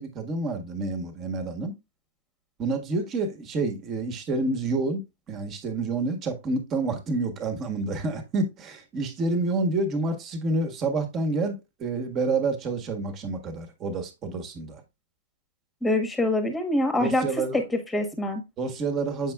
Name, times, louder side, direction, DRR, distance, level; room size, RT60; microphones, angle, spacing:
voice 1, 0.0-1.8 2.6-5.0 5.3-14.8 17.0-17.6 18.6-19.3, right 3 dB, 25° right, 1.5 m, -28 dB
voice 2, 15.8-17.3 17.5-18.4, left 1 dB, 5° left, 1.4 m, -25 dB
7.4 x 5.5 x 2.3 m
hypercardioid pair, 115°, 0 cm